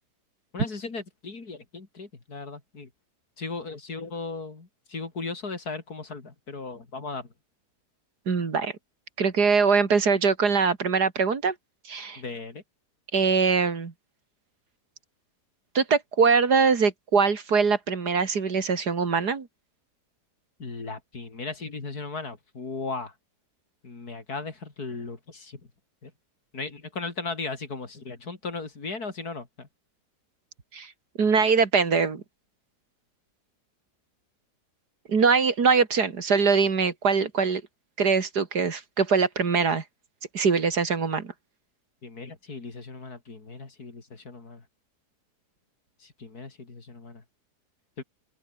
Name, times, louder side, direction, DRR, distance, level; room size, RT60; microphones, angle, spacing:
voice 1, 0.5-2.9 3.4-7.3 12.2-12.6 20.6-23.1 23.8-25.6 26.0-26.1 26.5-29.7 42.0-44.6 46.0-47.2 48.0-48.1, left 3 dB, 70° left, 3.9 m, -37 dB
voice 2, 8.3-8.7 9.2-11.5 11.8-12.2 13.1-13.9 15.7-19.5 30.7-30.9 31.2-32.2 35.1-37.6 38.0-39.8 40.3-41.3, right 5 dB, 75° right, 2.9 m, -22 dB
omnidirectional pair, 1.7 m